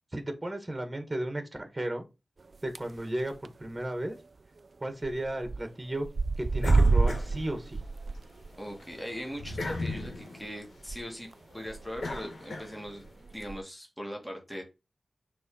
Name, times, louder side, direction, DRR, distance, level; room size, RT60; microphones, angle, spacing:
voice 1, 0.1-2.0 2.6-4.2 4.8-6.1 6.4-7.8, right 1 dB, 20° right, 6 dB, 1.8 m, -34 dB
sound 1, 2.5-3.0 3.3-3.6 3.9-4.0 4.2-4.3 5.0-5.6 5.9-11.0 11.3-11.4 11.7-12.2 12.9-13.6, right 3 dB, 50° right, 0.4 m, -28 dB
sound 2, 6.6-8.1 8.5-13.1, left 2 dB, 90° left, 1.8 m, -39 dB
voice 2, 8.6-11.3 11.5-14.6, equal, 5° left, 0 dB, 2.1 m, -40 dB
6.7 x 3.7 x 5.5 m, 0.26 s
wide cardioid pair, 105°, 0 cm